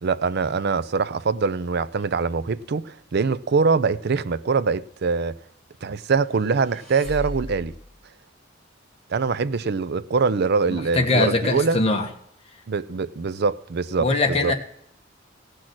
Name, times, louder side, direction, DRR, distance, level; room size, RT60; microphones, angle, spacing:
voice 1, 0.0-5.3 5.8-7.7 9.1-11.8 12.7-14.5, right 4 dB, 55° right, 0.5 m, -23 dB
sound 1, 6.2-7.9, left 1 dB, 35° right, 4.8 m, -37 dB
voice 2, 10.7-12.1 14.0-14.5, left 2 dB, 30° left, 1.5 m, -22 dB
17.0 x 6.4 x 6.0 m
head